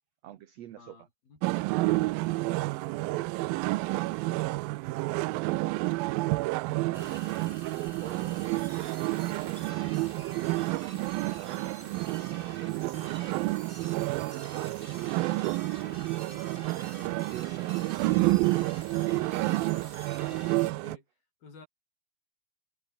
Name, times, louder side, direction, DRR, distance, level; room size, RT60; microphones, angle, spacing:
voice 1, 0.2-1.1 1.7-3.3 4.2-6.1 6.6-7.2 8.0-8.4 9.2-9.8 10.8-13.2 14.1-15.5 16.2-18.9, right 12 dB, 60° right, 1.8 m, -46 dB
voice 2, 0.8-1.4 20.2-21.1 21.4-21.7, left 4 dB, 80° left, 9.0 m, -53 dB
sound 1, 1.4-21.0, right 21 dB, 85° right, 2.4 m, -30 dB
sound 2, 6.9-20.7, right 2 dB, 15° right, 2.7 m, -48 dB
omnidirectional pair, 4.1 m